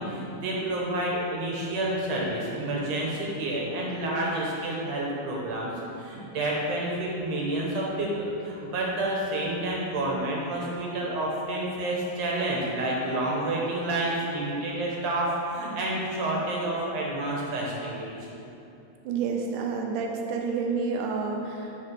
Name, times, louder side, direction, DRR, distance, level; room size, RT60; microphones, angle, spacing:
voice 1, 0.0-5.7 6.0-18.3, right 1 dB, 65° right, -3 dB, 2.1 m, -29 dB
voice 2, 19.1-21.6, right 5 dB, 85° right, 2 dB, 2.3 m, -29 dB
6.6 x 4.2 x 6.1 m, 2.8 s
omnidirectional pair, 3.6 m